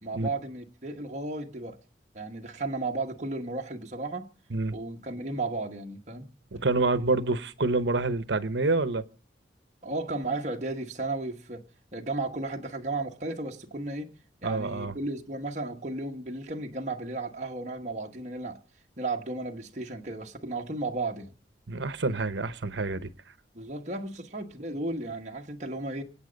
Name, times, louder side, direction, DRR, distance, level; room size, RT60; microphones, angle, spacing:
voice 1, 0.0-1.8 2.1-4.3 4.7-6.3 9.8-11.6 11.9-14.1 14.4-18.6 19.0-21.3 23.5-26.0, right 2 dB, 40° right, 1.3 m, -34 dB
voice 2, 6.5-9.0 14.4-15.0 21.7-23.1, right 3 dB, 80° right, 0.9 m, -27 dB
25.0 x 8.8 x 5.2 m
head